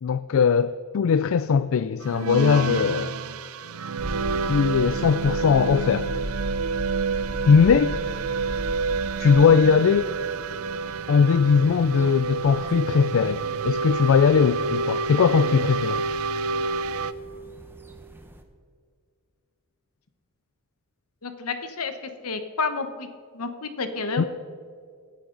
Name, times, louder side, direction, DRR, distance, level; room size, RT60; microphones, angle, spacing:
voice 1, 0.0-3.2 4.4-6.1 7.5-7.9 9.2-10.1 11.1-16.0 24.2-24.3, left 6 dB, 65° left, 0.4 m, -20 dB
sound 1, 2.0-17.1, right 5 dB, 70° right, 0.5 m, -29 dB
sound 2, 4.0-18.4, equal, 10° right, 1.0 m, -39 dB
voice 2, 21.2-21.9 22.2-23.1 23.3-24.2, left 4 dB, 80° left, 1.2 m, -29 dB
26.0 x 9.2 x 3.9 m
head